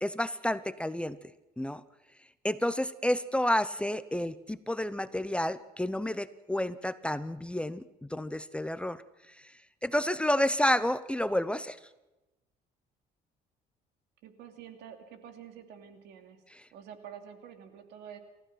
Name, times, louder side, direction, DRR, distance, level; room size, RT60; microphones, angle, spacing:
voice 1, 0.0-1.3 1.6-1.8 2.4-9.0 9.8-11.8, left 1 dB, 5° left, 14 dB, 0.8 m, -30 dB
voice 2, 14.2-16.4 16.7-18.2, right 8 dB, 85° right, 6 dB, 2.8 m, -48 dB
29.5 x 15.0 x 5.9 m, 1.0 s
cardioid pair, 110°, 17 cm